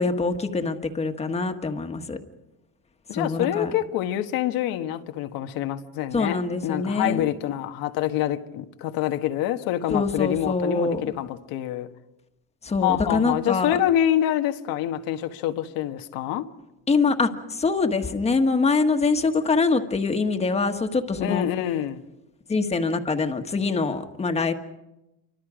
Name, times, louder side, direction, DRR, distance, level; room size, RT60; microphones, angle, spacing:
voice 1, 0.0-2.2 3.2-3.7 6.1-7.2 9.9-11.1 12.6-13.8 16.9-21.5 22.5-24.5, left 4 dB, 20° left, 1.5 m, -24 dB
voice 2, 3.1-11.9 12.8-16.5 21.2-22.0, left 12 dB, 80° left, 1.5 m, -26 dB
28.0 x 25.0 x 5.0 m
cardioid pair, 155°, 34 cm